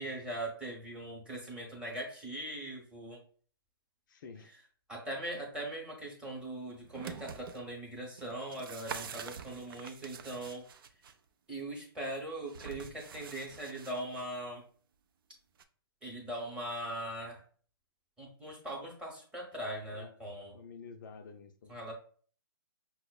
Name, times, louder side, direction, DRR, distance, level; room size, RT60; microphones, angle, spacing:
voice 1, 0.0-3.2 4.9-10.7 11.5-14.6 16.0-17.4 18.2-20.6 21.7-21.9, right 1 dB, 5° right, -2 dB, 0.8 m, -40 dB
voice 2, 4.1-4.5 19.9-20.2 20.5-21.9, left 5 dB, 55° left, 6 dB, 0.4 m, -50 dB
sound 1, 6.7-7.6 8.2-11.1 12.5-14.2 15.6-15.7, right 7 dB, 65° right, 0.4 m, -46 dB
5.8 x 2.0 x 2.2 m, 0.44 s
hypercardioid pair, 150°, 13 cm